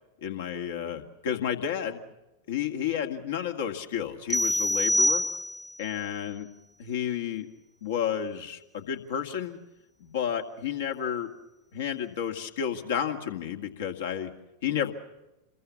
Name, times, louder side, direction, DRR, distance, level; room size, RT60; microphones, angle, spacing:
voice 1, 0.2-2.0 2.5-5.2 5.8-6.5 6.8-7.5 7.8-9.6 10.0-11.3 11.7-14.3 14.6-14.9, left 9 dB, 60° left, 4 dB, 2.1 m, -31 dB
sound 1, 4.3-5.8, equal, 5° left, 0.8 m, -25 dB
27.5 x 22.0 x 7.2 m, 0.99 s
figure-of-eight pair, 90°, 0 cm